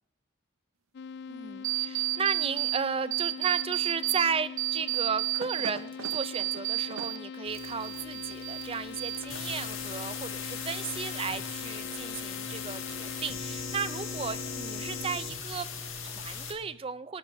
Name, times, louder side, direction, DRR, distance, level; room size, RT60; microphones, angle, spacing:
sound 1, 0.9-15.2, left 6 dB, 50° left, 0.3 m, -42 dB
voice 1, 1.3-17.2, right 6 dB, 25° right, 15 dB, 0.4 m, -34 dB
sound 2, 1.6-2.8 3.1-4.3 4.6-7.2 7.5-8.7 9.0-9.6, right 19 dB, 85° right, 0.7 m, -31 dB
sound 3, 7.4-16.5, left 5 dB, 75° left, 1.9 m, -39 dB
18.0 x 12.0 x 2.7 m, 0.90 s
head